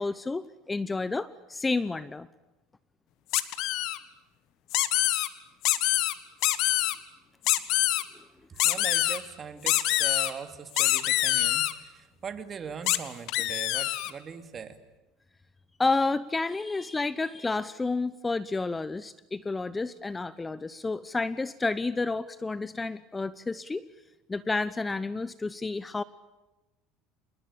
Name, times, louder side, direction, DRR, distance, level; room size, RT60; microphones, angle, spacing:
voice 1, 0.0-2.3 15.8-23.8 24.3-26.0, left 3 dB, 15° left, 17 dB, 0.9 m, -30 dB
sound 1, 3.3-4.0 4.7-5.3 5.6-6.1 6.4-6.9 7.4-8.0 8.6-9.2 9.7-10.3 10.8-11.7 12.9-13.0 13.3-14.1, left 16 dB, 65° left, 1.7 m, -25 dB
voice 2, 8.5-14.8, right 6 dB, 30° right, 10 dB, 2.7 m, -40 dB
27.5 x 21.5 x 8.8 m, 1.0 s
supercardioid pair, 110°, 0 cm